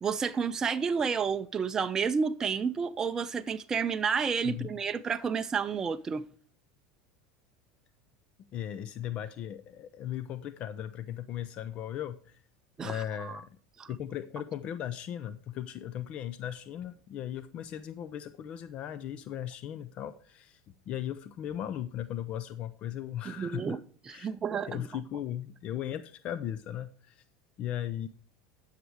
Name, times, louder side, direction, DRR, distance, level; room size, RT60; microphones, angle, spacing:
voice 1, 0.0-6.2 12.8-13.4 13.8-13.9 23.3-23.8 24.1-24.8, right 6 dB, 25° right, 0.5 m, -30 dB
voice 2, 4.4-4.8 8.5-12.4 12.8-13.6 13.9-23.8 24.1-24.3 24.7-27.2 27.6-28.1, left 11 dB, 45° left, 0.6 m, -37 dB
11.5 x 6.6 x 4.7 m
supercardioid pair, 115°, 3 cm